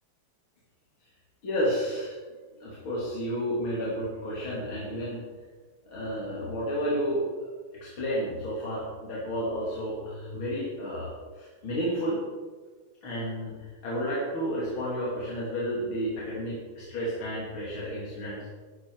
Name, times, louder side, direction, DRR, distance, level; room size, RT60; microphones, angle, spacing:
voice 1, 1.4-2.2 2.6-5.2 5.9-12.2 13.0-18.5, equal, 80° left, -7 dB, 3.8 m, -31 dB
14.0 x 11.0 x 4.8 m, 1.4 s
omnidirectional pair, 2.2 m